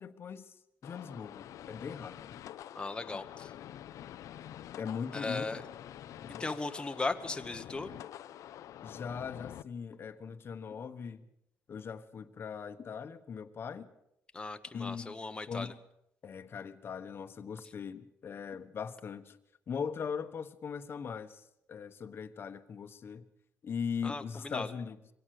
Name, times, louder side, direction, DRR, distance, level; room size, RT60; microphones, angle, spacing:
voice 1, 0.0-2.4 3.1-3.2 4.8-5.6 6.2-6.5 8.8-11.3 11.7-13.9 14.7-15.2 15.5-15.8 16.2-19.4 19.7-23.3 23.6-25.0, left 6 dB, 45° left, 1.2 m, -40 dB
sound 1, 0.8-9.6, left 11 dB, 75° left, 0.7 m, -47 dB
voice 2, 2.7-3.5 5.1-5.6 6.4-7.9 14.3-15.7 24.0-24.7, left 3 dB, 15° left, 1.2 m, -37 dB
23.5 x 17.0 x 6.6 m
cardioid pair, 125°, 6 cm